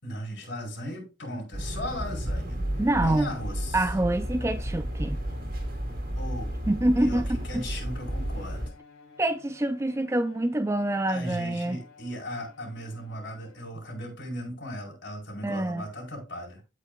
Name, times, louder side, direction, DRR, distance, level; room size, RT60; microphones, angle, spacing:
voice 1, 0.0-2.6 2.9-3.9 6.2-6.5 7.0-8.6 11.1-16.6, equal, 60° left, 4.8 m, -37 dB
sound 1, 1.5-8.7, right 1 dB, 45° right, 2.0 m, -32 dB
Bowed string instrument, 2.7-13.9, left 4 dB, 75° left, 3.1 m, -54 dB
voice 2, 2.8-3.3 3.7-5.2 6.7-7.6 9.2-11.8 15.4-15.8, right 1 dB, 15° right, 0.4 m, -26 dB
16.0 x 5.3 x 2.3 m
head